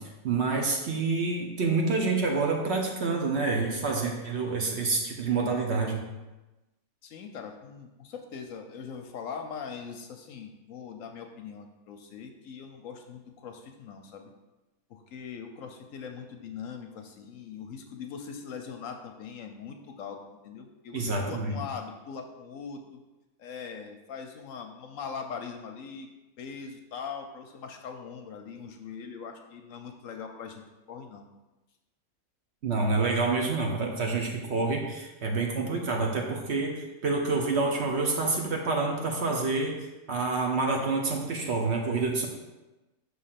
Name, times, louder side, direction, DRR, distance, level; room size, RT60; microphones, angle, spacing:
voice 1, 0.0-6.0 20.9-21.6 32.6-39.7 40.1-42.3, right 3 dB, 55° right, 1 dB, 1.0 m, -28 dB
voice 2, 7.0-14.3 14.9-20.2 20.4-23.0 23.4-26.1 26.4-30.6 30.9-31.3, left 6 dB, 70° left, 5 dB, 0.9 m, -41 dB
5.9 x 3.2 x 5.7 m, 1.1 s
omnidirectional pair, 1.6 m